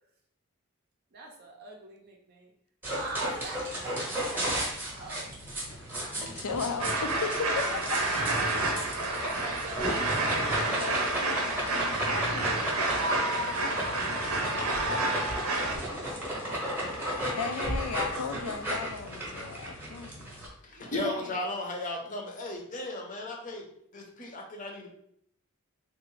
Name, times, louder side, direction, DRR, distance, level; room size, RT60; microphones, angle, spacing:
voice 1, 1.1-2.5 2.9-5.3 7.6-7.7 8.8-8.9 9.1-11.2 12.9-13.6 15.5-17.7 20.7-21.4, right 2 dB, 45° right, -1 dB, 0.5 m, -44 dB
sound 1, 2.8-20.5, right 1 dB, 10° right, 0.8 m, -35 dB
voice 2, 6.1-8.4 10.6-15.2 17.4-20.3 21.1-21.2, left 5 dB, 80° left, 8 dB, 0.4 m, -38 dB
sound 2, 6.8-15.8, right 2 dB, 85° right, 0.7 m, -29 dB
voice 3, 20.6-24.9, left 2 dB, 35° left, 2 dB, 0.6 m, -35 dB
3.4 x 2.5 x 3.1 m, 0.70 s
head